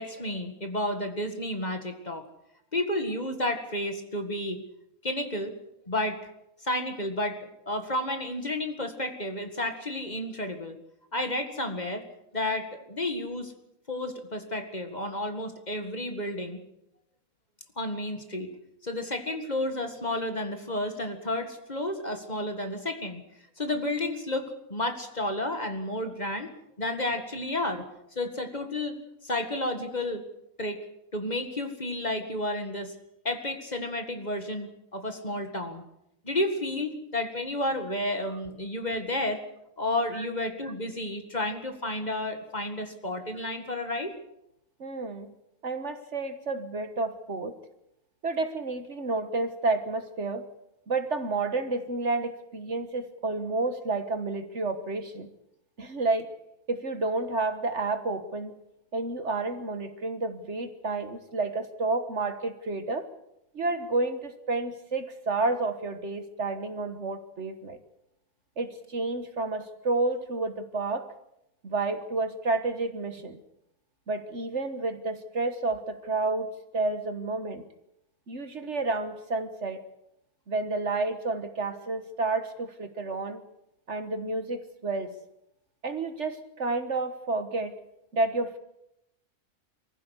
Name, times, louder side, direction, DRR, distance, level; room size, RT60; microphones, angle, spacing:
voice 1, 0.0-2.3 2.7-4.6 5.0-5.5 5.9-6.2 6.6-10.8 11.1-12.0 12.3-13.5 13.9-16.6 17.8-18.5 18.8-23.2 23.6-26.5 26.8-27.8 28.2-29.0 29.2-30.2 30.6-30.8 31.1-32.9 33.2-35.8 36.2-39.4 39.8-44.1, left 1 dB, 30° left, 6 dB, 2.1 m, -31 dB
voice 2, 44.8-45.3 45.6-47.6 48.2-50.4 50.9-55.3 55.8-56.3 56.7-58.6 58.9-63.1 63.5-67.8 68.6-71.1 71.6-73.4 74.1-77.6 78.3-79.8 80.5-83.4 83.9-85.1 85.8-87.8 88.1-88.6, right 3 dB, 55° right, 9 dB, 1.6 m, -30 dB
24.0 x 15.5 x 8.2 m, 0.82 s
omnidirectional pair, 1.5 m